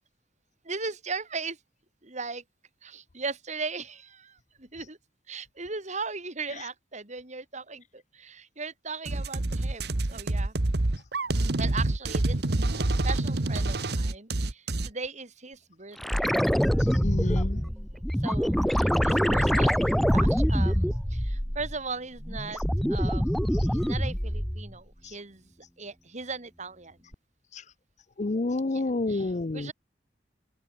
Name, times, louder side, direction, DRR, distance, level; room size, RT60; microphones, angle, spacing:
voice 1, 0.6-1.6 2.0-2.4 2.8-5.0 5.3-10.6 11.6-16.4 17.5-25.5 25.8-27.0 28.7-29.7, right 4 dB, 45° right, 3.5 m, -38 dB
sound 1, 9.1-14.9, right 2 dB, 65° right, 1.3 m, -27 dB
sound 2, 16.0-21.8 22.2-24.7 27.1-27.2, equal, ahead, 0.5 m, -25 dB
voice 2, 17.0-17.6 28.2-29.7, left 2 dB, 45° left, 0.6 m, -29 dB
head